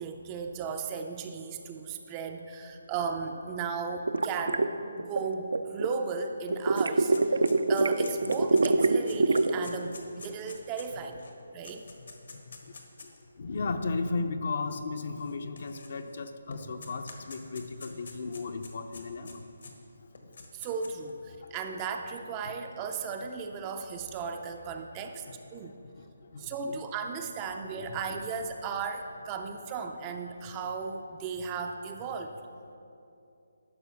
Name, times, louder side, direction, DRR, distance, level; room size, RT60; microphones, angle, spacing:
voice 1, 0.0-4.7 5.0-7.4 7.7-11.2 11.5-11.9 20.5-25.3 25.5-25.8 26.4-32.3, right 5 dB, 15° right, 5 dB, 0.4 m, -36 dB
sound 1, 4.1-5.9 6.5-9.6, right 3 dB, 80° right, 0.5 m, -24 dB
sound 2, 5.9-6.0 6.3-13.2 14.0-14.1 15.1-16.2 16.5-19.7 20.1-21.1, left 4 dB, 65° left, 1.3 m, -48 dB
voice 2, 11.8-20.5 21.4-21.6 22.4-22.5 24.9-26.8 27.9-28.2, left 3 dB, 50° left, 8 dB, 0.6 m, -37 dB
12.0 x 4.2 x 6.9 m, 2.7 s
hypercardioid pair, 170°, 0 cm